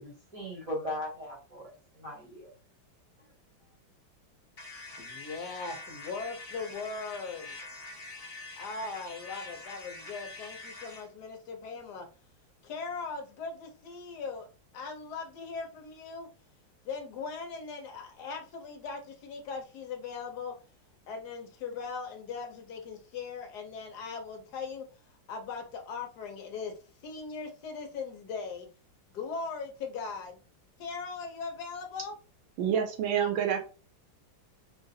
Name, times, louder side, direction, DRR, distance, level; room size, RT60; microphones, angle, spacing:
voice 1, 0.0-2.5, left 1 dB, 25° right, 0.8 m, -38 dB
sound 1, 4.6-11.1, left 3 dB, 35° left, 1.3 m, -45 dB
voice 2, 5.0-7.6 8.6-12.1 12.6-14.5 14.7-16.3 16.8-20.5 21.1-24.9 25.3-26.7 27.0-28.7 29.1-30.4 30.8-32.2, left 4 dB, 65° left, 1.1 m, -39 dB
voice 3, 32.6-33.6, right 8 dB, 75° right, 1.4 m, -27 dB
3.8 x 2.5 x 2.7 m
omnidirectional pair, 2.3 m